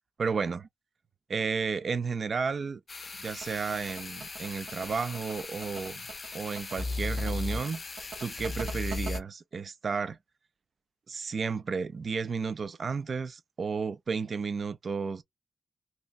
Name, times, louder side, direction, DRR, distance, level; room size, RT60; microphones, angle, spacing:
voice 1, 0.2-0.6 1.3-2.8 3.2-6.0 6.3-7.8 8.2-10.2 11.1-15.2, right 5 dB, 55° right, 0.4 m, -32 dB
sound 1, 2.9-9.2, left 3 dB, 40° left, 0.5 m, -37 dB
sound 2, 3.3-9.2, right 5 dB, 85° right, 0.9 m, -43 dB
2.9 x 2.8 x 2.3 m
wide cardioid pair, 95°, 0 cm